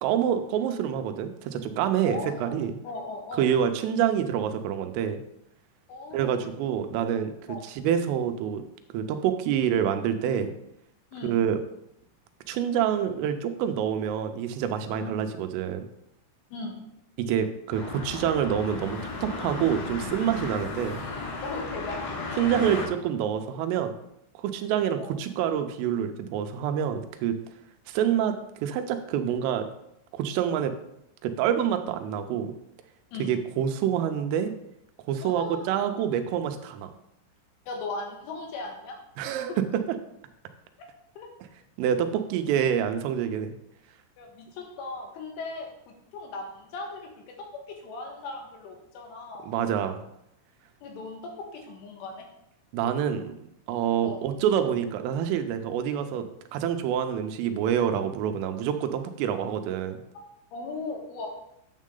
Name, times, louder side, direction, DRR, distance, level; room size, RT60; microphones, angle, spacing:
voice 1, 0.0-2.8 3.4-5.2 6.1-7.3 7.6-8.6 8.9-10.5 11.2-11.6 12.5-15.9 17.2-21.0 22.4-23.9 24.4-27.4 27.9-28.4 28.6-29.7 30.1-30.7 31.2-32.5 33.2-34.5 35.1-36.9 39.2-39.5 41.8-43.5 49.5-50.0 52.7-53.4 53.7-60.0, right 9 dB, 85° right, 8 dB, 3.3 m, -27 dB
voice 2, 2.0-3.5 5.9-6.4 7.5-7.7 11.1-11.4 15.0-15.1 16.5-16.8 21.4-22.0 25.0-25.1 33.1-33.3 35.2-35.7 37.7-39.0 41.2-41.3 44.2-45.7 46.1-47.1 47.5-49.5 50.8-52.3 54.0-54.2 60.2-60.3 60.5-61.3, left 3 dB, 75° left, 1 dB, 3.9 m, -38 dB
sound 1, 17.7-22.9, left 3 dB, 60° left, 3.9 m, -35 dB
9.8 x 7.4 x 3.8 m, 0.80 s
omnidirectional pair, 5.7 m